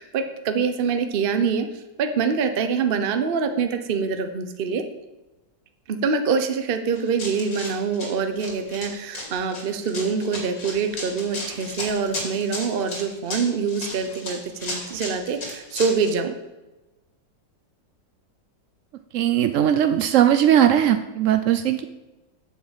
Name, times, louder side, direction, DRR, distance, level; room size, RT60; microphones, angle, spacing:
voice 1, 0.0-4.8 5.9-16.3, right 5 dB, 45° right, 7 dB, 0.8 m, -25 dB
Run, 6.9-16.1, left 2 dB, 75° left, 3.4 m, -34 dB
voice 2, 19.1-21.8, right 10 dB, 80° right, 9 dB, 0.6 m, -19 dB
8.8 x 7.0 x 7.3 m, 1.1 s
omnidirectional pair, 2.0 m